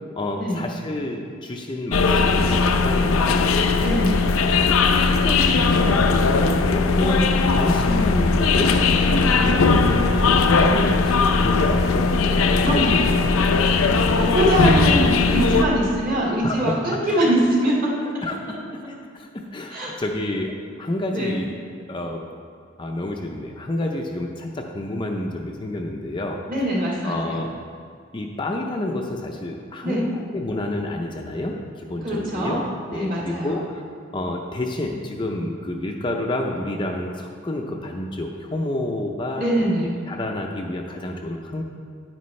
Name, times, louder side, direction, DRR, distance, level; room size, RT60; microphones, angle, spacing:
voice 1, 0.2-3.7 4.7-8.7 9.0-12.1 12.6-13.5 16.2-17.2 18.2-18.6 18.9-20.5 20.8-21.6 21.9-22.2 22.8-26.4 27.0-27.5 28.1-32.6 32.9-33.8 34.1-39.5 40.1-41.6, left 1 dB, 25° left, 1 dB, 0.5 m, -29 dB
sound 1, 1.9-15.7, left 4 dB, 90° left, 0.6 m, -18 dB
voice 2, 3.8-4.3 12.6-13.2 14.1-18.2 19.7-19.9 21.1-21.4 26.5-27.4 29.8-30.1 32.0-32.6 32.9-33.6 39.3-40.0, right 1 dB, 40° right, -5 dB, 2.2 m, -23 dB
9.6 x 9.5 x 3.2 m, 2.3 s
head